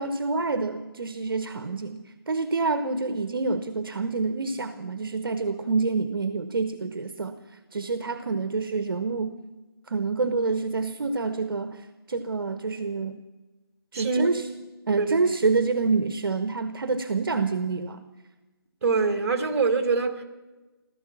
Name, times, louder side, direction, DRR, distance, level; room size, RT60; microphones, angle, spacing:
voice 1, 0.0-7.4 7.7-9.3 9.9-13.2 13.9-14.4 14.9-18.0, right 4 dB, 60° right, 1.0 m, -27 dB
voice 2, 13.9-14.3 15.0-15.2 18.8-20.2, right 4 dB, 35° right, 1.7 m, -24 dB
16.5 x 14.0 x 6.0 m
hypercardioid pair, 170°, 13 cm